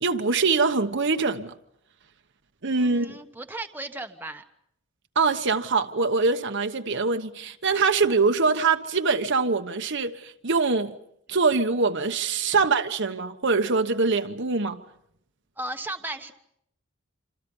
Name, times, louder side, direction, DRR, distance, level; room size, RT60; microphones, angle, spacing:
voice 1, 0.0-1.5 2.6-3.2 5.2-10.9 11.3-14.8, right 4 dB, 55° right, 1.1 m, -23 dB
voice 2, 2.8-4.4 15.6-16.3, right 2 dB, 10° right, 1.1 m, -35 dB
27.5 x 26.5 x 5.5 m
head